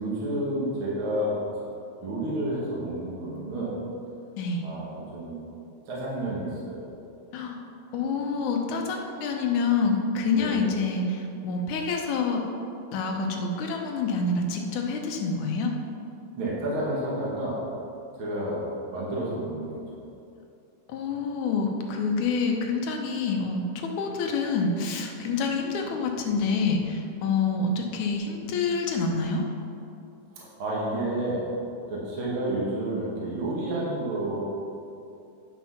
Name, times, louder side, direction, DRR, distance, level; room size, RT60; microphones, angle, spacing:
voice 1, 0.0-1.4 2.0-3.8 4.6-5.4 5.9-6.8 10.3-10.7 16.4-17.6 18.2-19.8 22.1-22.2 30.3-31.5 31.9-34.4, right 1 dB, 45° right, -6 dB, 2.3 m, -30 dB
voice 2, 7.9-12.4 12.9-15.7 20.9-29.4, left 4 dB, 70° left, 2 dB, 2.2 m, -27 dB
10.0 x 6.0 x 5.7 m, 2.7 s
omnidirectional pair, 3.8 m